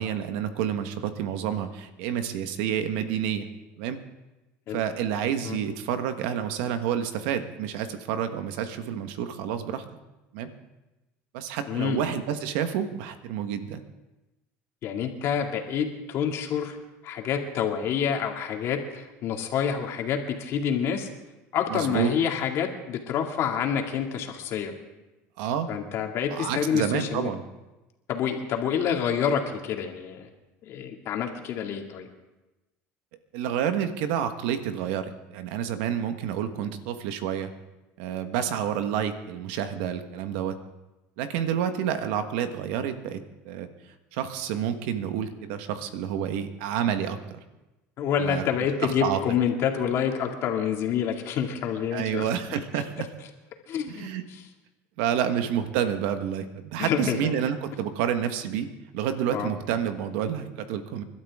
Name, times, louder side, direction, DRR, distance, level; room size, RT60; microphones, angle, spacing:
voice 1, 0.0-3.5 3.8-4.0 4.7-9.8 10.3-10.5 11.3-13.8 21.7-22.1 25.4-25.7 26.3-27.4 33.3-37.5 38.0-40.6 41.2-43.7 44.1-47.4 48.2-48.4 48.8-49.2 51.9-53.1 53.9-54.2 55.0-58.7 58.9-61.0, right 9 dB, 85° right, 8 dB, 1.4 m, -29 dB
voice 2, 11.7-12.1 14.8-16.8 17.0-21.1 21.5-24.7 25.7-27.3 28.1-30.3 30.7-32.1 48.0-52.2 53.7-54.1 56.8-57.3 59.3-59.5, left 8 dB, 55° left, 2 dB, 2.4 m, -27 dB
29.5 x 12.0 x 3.7 m, 1.0 s
cardioid pair, 125°, 6 cm